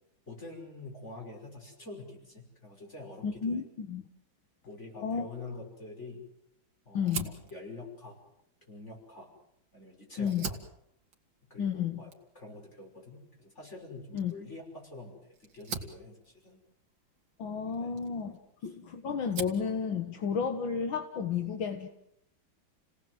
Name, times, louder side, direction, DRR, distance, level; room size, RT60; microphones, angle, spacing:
voice 1, 0.3-3.6 4.7-6.3 6.9-8.2 8.7-9.3 9.7-10.6 11.5-16.6 17.7-18.0 18.3-18.7, left 2 dB, 35° left, 1 dB, 6.1 m, -46 dB
voice 2, 3.2-4.0 5.0-5.3 6.9-7.4 10.2-10.5 11.6-12.0 14.1-14.3 17.4-21.9, left 6 dB, 75° left, 6 dB, 2.1 m, -32 dB
Fire, 7.0-9.7 10.1-18.8 19.1-19.7, right 5 dB, 70° right, 2.7 m, -44 dB
29.5 x 18.0 x 7.8 m, 0.77 s
omnidirectional pair, 2.2 m